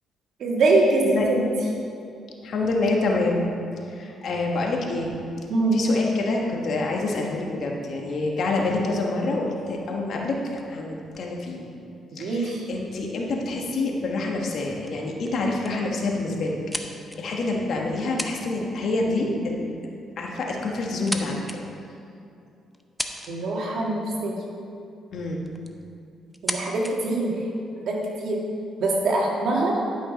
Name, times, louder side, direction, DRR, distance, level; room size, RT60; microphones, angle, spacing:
voice 1, 0.4-1.5 5.5-5.8 12.2-12.6 23.3-24.4 26.4-27.3 27.9-28.4 28.8-29.8, right 2 dB, 70° right, -2 dB, 1.9 m, -23 dB
voice 2, 2.4-3.5 3.9-5.1 5.7-11.6 12.1-16.6 17.1-19.7 20.2-21.4 25.1-25.4, left 2 dB, 65° left, 0 dB, 1.5 m, -27 dB
sound 1, 9.6-12.1 13.0-13.1 13.4-13.7 14.3-14.6 14.9-15.0 15.3-15.8 16.3-17.4 18.0-18.5 18.8-19.0 20.1-20.2 20.7-21.6 22.1-22.2 22.7-23.6 24.9-25.0 25.5-25.8 26.3-26.9, equal, ahead, 0.7 m, -36 dB
11.5 x 6.0 x 5.2 m, 2.6 s
cardioid pair, 90°, 0 cm